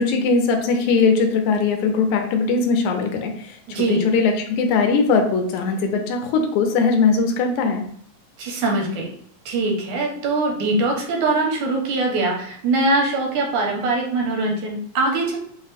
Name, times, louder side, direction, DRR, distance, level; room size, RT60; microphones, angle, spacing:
voice 1, 0.0-7.8, left 4 dB, 80° left, 4 dB, 2.0 m, -20 dB
voice 2, 3.7-4.0 8.4-9.1 9.5-15.4, right 2 dB, 80° right, 0 dB, 2.4 m, -22 dB
5.4 x 2.1 x 4.0 m, 0.65 s
omnidirectional pair, 3.4 m